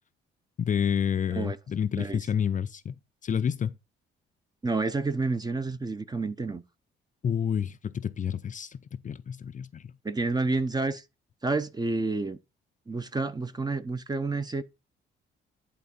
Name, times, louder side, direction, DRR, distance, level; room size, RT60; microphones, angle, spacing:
voice 1, 0.6-2.9 3.2-3.8 7.2-8.8 9.0-9.8, left 8 dB, 40° left, 0.6 m, -29 dB
voice 2, 1.9-2.2 4.6-6.6 10.0-11.0 11.4-12.4 12.9-14.6, right 3 dB, 20° right, 0.9 m, -29 dB
11.0 x 3.7 x 5.4 m
cardioid pair, 90°, 20 cm